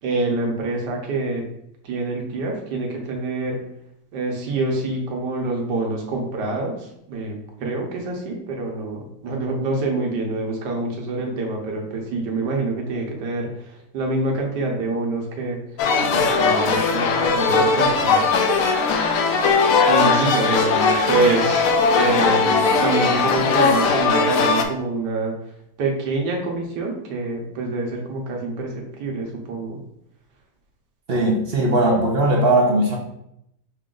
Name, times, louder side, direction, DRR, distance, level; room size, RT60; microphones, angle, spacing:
voice 1, 0.0-1.4 1.8-3.6 4.1-15.8 16.1-18.3 19.9-25.3 25.8-29.8, right 3 dB, 85° right, 0 dB, 1.6 m, -26 dB
sound 1, 15.8-24.6, left 4 dB, 70° left, 0.8 m, -19 dB
voice 2, 31.1-33.0, right 1 dB, 55° right, 0 dB, 0.7 m, -18 dB
5.6 x 2.5 x 3.7 m, 0.76 s
omnidirectional pair, 1.8 m